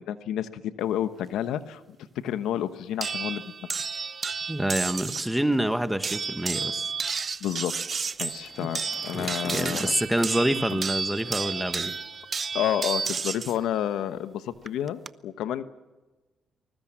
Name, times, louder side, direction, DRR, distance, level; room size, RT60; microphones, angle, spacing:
voice 1, 0.0-3.4 3.8-3.9 7.4-7.8 8.2-9.9 12.5-15.6, left 10 dB, 85° left, 12 dB, 1.1 m, -30 dB
sound 1, 3.0-5.4 6.0-13.6 14.7-15.1, right 5 dB, 40° right, 0.7 m, -32 dB
voice 2, 4.5-6.9 8.6-8.7 9.1-11.9, right 1 dB, 5° right, 10 dB, 1.5 m, -27 dB
Bicycle, 7.2-12.2, left 3 dB, 30° left, 1.9 m, -48 dB
24.0 x 21.0 x 7.4 m, 1.2 s
cardioid pair, 90°, 0 cm